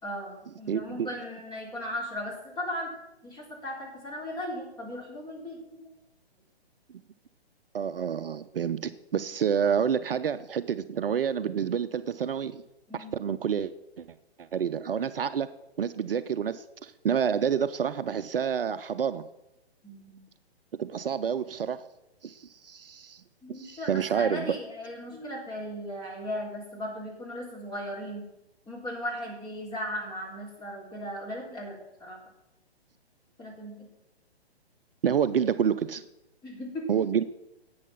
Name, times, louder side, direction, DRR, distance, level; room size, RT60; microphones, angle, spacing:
voice 1, 0.0-2.9 3.2-5.9 12.9-13.1 19.8-20.2 23.4-28.3 28.7-32.2 33.4-33.9 36.4-36.9, equal, 15° left, -2 dB, 3.6 m, -37 dB
voice 2, 0.7-1.1 7.7-12.6 12.9-14.1 14.4-15.5 15.8-19.2 20.8-21.8 22.2-23.2 23.5-24.5 35.0-36.1 36.9-37.2, right 7 dB, 60° right, 12 dB, 0.6 m, -28 dB
10.5 x 8.5 x 5.9 m, 0.92 s
figure-of-eight pair, 130°, 32 cm